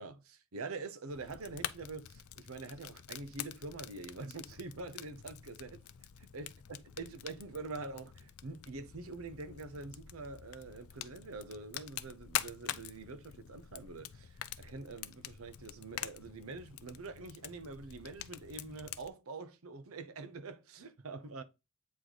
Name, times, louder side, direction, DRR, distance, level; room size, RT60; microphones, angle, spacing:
voice 1, 0.0-5.8 6.2-21.4, right 3 dB, 75° right, 0.8 m, -45 dB
Fire, 1.1-19.1, left 11 dB, 85° left, 0.4 m, -46 dB
8.4 x 3.1 x 3.9 m
head